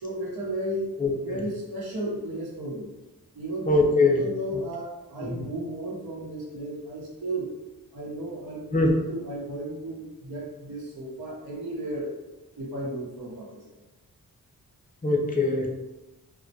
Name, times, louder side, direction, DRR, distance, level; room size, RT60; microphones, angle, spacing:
voice 1, 0.0-0.9 1.2-2.9 3.3-7.5 7.9-8.7 9.1-12.1 12.6-13.8, right 1 dB, 70° right, -5 dB, 0.9 m, -34 dB
voice 2, 3.7-4.2 8.7-8.9 15.0-15.7, left 2 dB, 20° left, 0 dB, 0.6 m, -21 dB
2.2 x 2.1 x 2.6 m, 1.0 s
cardioid pair, 45°, 38 cm